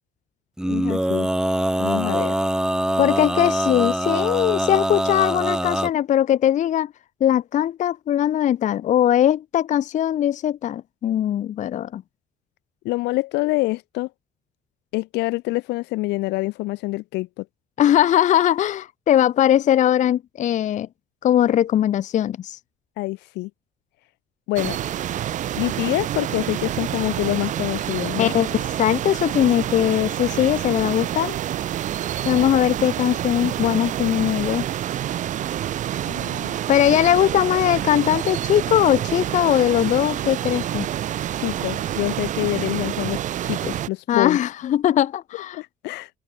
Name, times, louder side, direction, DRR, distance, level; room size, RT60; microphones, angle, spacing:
Male singing, 0.6-5.9, right 1 dB, 5° right, 0.8 m, -23 dB
voice 1, 0.7-1.3 1.8-2.4 12.8-14.1 14.9-17.4 23.0-23.5 24.5-24.8 25.5-28.3 36.1-36.6 41.4-44.4 45.5-46.1, left 20 dB, 90° left, 1.4 m, -26 dB
voice 2, 3.0-6.9 7.2-12.0 17.8-20.9 21.2-22.6 28.2-31.3 32.2-34.7 36.7-40.9 44.1-45.6, left 11 dB, 45° left, 0.6 m, -20 dB
sound 1, 24.6-43.9, right 11 dB, 50° right, 0.5 m, -27 dB
open air
cardioid pair, 110°, 17 cm